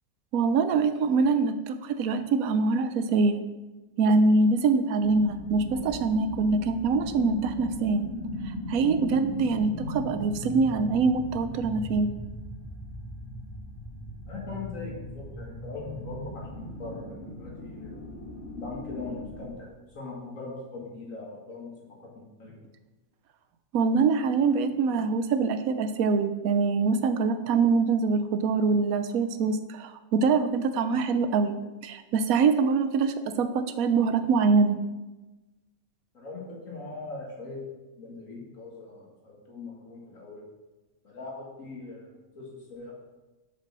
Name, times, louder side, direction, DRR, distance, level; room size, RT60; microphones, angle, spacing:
voice 1, 0.3-3.4 4.0-8.1 8.5-12.1 23.7-34.8, right 4 dB, 85° right, 10 dB, 1.1 m, -24 dB
sound 1, 5.0-19.4, left 1 dB, 50° left, 3.0 m, -38 dB
voice 2, 13.9-18.0 18.6-21.7 22.1-22.5 36.1-37.6 38.0-40.4 41.0-42.9, left 3 dB, 70° left, -3 dB, 2.5 m, -41 dB
6.7 x 5.9 x 6.1 m, 1.1 s
omnidirectional pair, 1.5 m